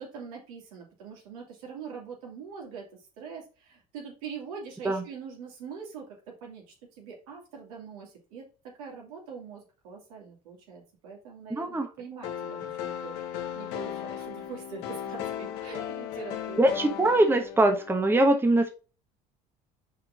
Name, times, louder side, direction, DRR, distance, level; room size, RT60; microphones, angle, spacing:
voice 1, 0.0-16.7, right 6 dB, 80° right, -1 dB, 3.0 m, -43 dB
voice 2, 11.5-11.9 16.6-18.7, right 1 dB, 10° right, 5 dB, 1.2 m, -22 dB
sound 1, 12.2-18.1, left 10 dB, 65° left, 1.2 m, -36 dB
5.5 x 4.4 x 5.0 m, 0.34 s
hypercardioid pair, 80°, 19 cm